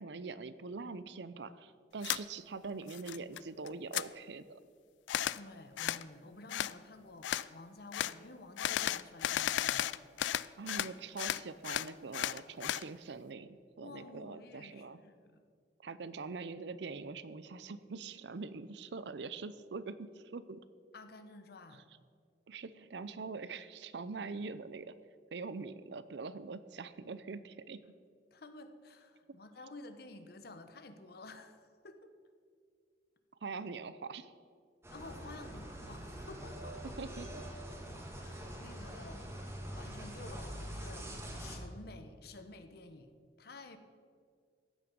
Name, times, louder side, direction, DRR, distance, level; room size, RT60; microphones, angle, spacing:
voice 1, 0.0-4.6 10.6-15.0 15.8-20.6 22.5-24.9 25.3-27.8 33.4-34.3 37.0-37.4, right 4 dB, 75° right, 15 dB, 0.6 m, -43 dB
sound 1, 2.0-2.2 2.6-3.4 3.7-4.1 5.1-5.4 5.8-6.0 6.5-6.7 7.2-7.5 7.9-8.1 8.6-10.9 11.2-12.8, left 11 dB, 90° left, 0.3 m, -34 dB
voice 2, 5.3-9.9 13.8-15.4 20.9-21.8 28.3-32.1 34.9-37.0 38.2-39.3 39.7-43.1 43.4-43.8, left 2 dB, 60° left, 9 dB, 1.0 m, -52 dB
sound 2, 34.8-41.6, right 1 dB, 15° right, 1.8 m, -44 dB
14.5 x 8.9 x 5.3 m, 2.2 s
head